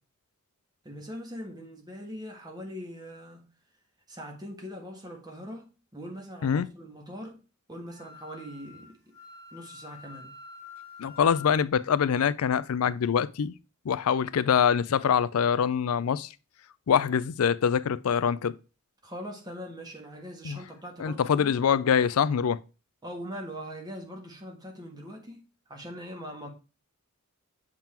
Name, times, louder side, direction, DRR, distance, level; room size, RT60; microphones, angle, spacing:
voice 1, 0.8-3.5 4.1-7.4 7.7-9.0 9.5-10.3 19.0-21.5 23.0-25.4 25.7-26.5, equal, 20° right, 1.5 m, -41 dB
Wind instrument woodwind instrument, 7.9-11.6, left 5 dB, 50° right, 1.8 m, -47 dB
voice 2, 11.0-13.5 13.8-16.3 16.9-18.5 20.4-20.6 21.0-22.6, left 7 dB, 80° left, 0.4 m, -24 dB
7.4 x 3.7 x 4.3 m
head